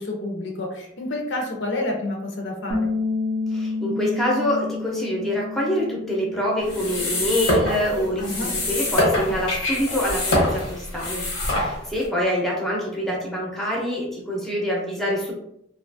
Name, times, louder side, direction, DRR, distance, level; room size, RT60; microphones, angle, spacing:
voice 1, 0.0-2.9 8.2-8.5, left 2 dB, 60° left, 1 dB, 0.6 m, -29 dB
Bass guitar, 2.7-9.0, left 3 dB, 50° right, 0.5 m, -30 dB
voice 2, 3.5-15.3, equal, ahead, -4 dB, 0.6 m, -25 dB
sound 1, 6.6-12.1, left 1 dB, 85° left, 1.0 m, -25 dB
2.7 x 2.3 x 2.6 m, 0.76 s
head